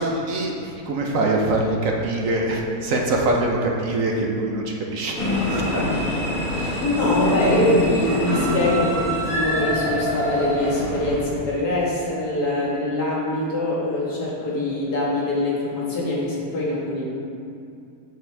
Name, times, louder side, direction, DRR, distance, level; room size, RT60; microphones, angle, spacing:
voice 1, 0.0-5.8 6.5-6.8, right 2 dB, 60° right, 0 dB, 1.2 m, -24 dB
sound 1, 5.1-11.5, left 1 dB, 65° left, 2.4 m, -25 dB
voice 2, 6.8-17.0, left 1 dB, 85° left, -6 dB, 2.4 m, -23 dB
8.0 x 7.4 x 3.4 m, 2.5 s
omnidirectional pair, 1.6 m